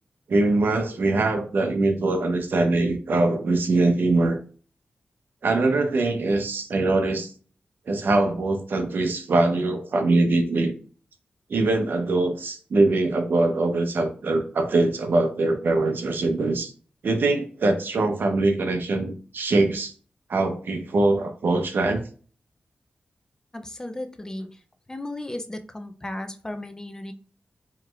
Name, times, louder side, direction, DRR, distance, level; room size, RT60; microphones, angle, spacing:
voice 1, 0.3-4.4 5.4-7.3 7.9-10.7 11.5-16.7 17.0-19.9 20.3-22.0, right 2 dB, 75° right, 6 dB, 0.7 m, -22 dB
voice 2, 23.5-24.5 24.9-27.1, left 1 dB, 20° left, 7 dB, 0.4 m, -35 dB
4.8 x 3.0 x 2.3 m, 0.40 s
wide cardioid pair, 110°, 4 cm